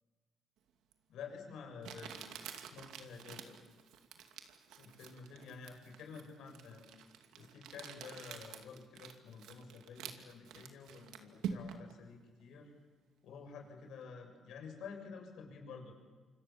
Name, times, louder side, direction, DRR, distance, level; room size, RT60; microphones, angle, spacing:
Crumpling crinkling, 0.9-1.0 1.8-11.9, right 8 dB, 90° right, 2.5 m, -48 dB
voice 1, 1.1-3.6 4.8-6.9 7.4-12.7 13.2-15.9, left 5 dB, 80° left, 3 dB, 7.2 m, -50 dB
27.5 x 26.5 x 7.3 m, 1.4 s
cardioid pair, 90°, 0 cm